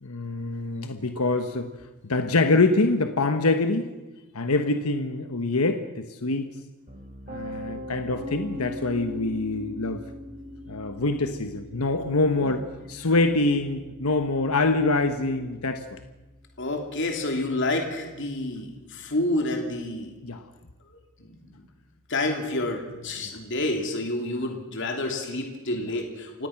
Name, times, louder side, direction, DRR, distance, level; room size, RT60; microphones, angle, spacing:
voice 1, 0.0-1.7 2.0-3.9 4.3-6.5 7.3-10.0 10.7-16.0 20.2-20.4, left 2 dB, 85° left, 7 dB, 1.2 m, -25 dB
Piano, 6.9-18.8, left 1 dB, 30° right, 4.0 m, -42 dB
voice 2, 16.6-20.1 21.2-21.6 22.1-26.5, left 2 dB, 55° left, 3 dB, 3.0 m, -29 dB
28.5 x 16.5 x 6.0 m, 1.1 s
head